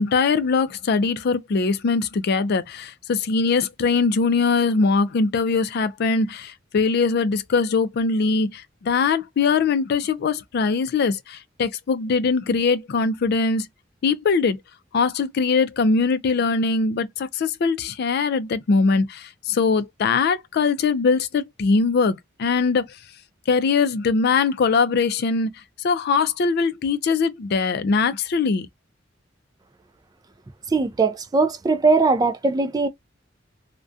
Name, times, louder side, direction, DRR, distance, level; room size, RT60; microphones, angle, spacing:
voice 1, 0.0-13.7 14.0-14.6 14.9-22.9 23.5-25.5 25.8-28.7, left 4 dB, 55° left, 0.4 m, -21 dB
voice 2, 30.7-32.9, right 3 dB, 20° right, 0.3 m, -20 dB
2.3 x 2.2 x 2.4 m
head